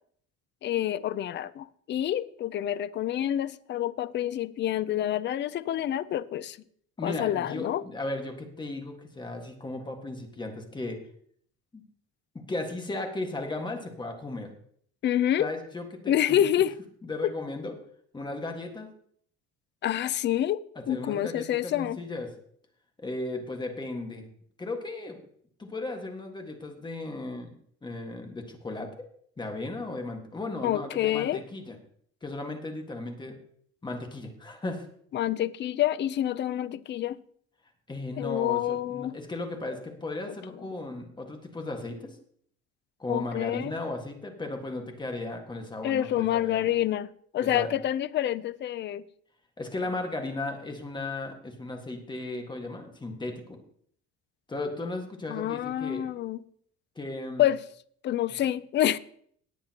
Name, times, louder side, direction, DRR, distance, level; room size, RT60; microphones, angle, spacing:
voice 1, 0.6-6.6 7.0-7.8 15.0-15.5 16.1-16.7 19.8-22.0 30.6-31.4 35.1-37.2 38.2-39.1 40.3-40.4 43.1-43.7 45.8-49.0 55.3-56.4 57.4-57.6 58.0-59.0, left 12 dB, 40° left, 0.4 m, -27 dB
voice 2, 7.0-11.0 11.7-11.8 12.5-14.5 15.4-16.4 17.0-17.7 18.1-18.9 20.7-22.3 23.0-24.2 24.6-25.2 25.6-27.5 27.8-28.9 29.4-31.8 32.2-33.3 33.8-34.9 37.9-42.2 43.0-46.7 47.4-47.7 49.6-53.6 54.5-56.1 56.9-57.5, left 2 dB, 15° left, 1.6 m, -36 dB
18.5 x 8.5 x 2.9 m
cardioid pair, 150°, 29 cm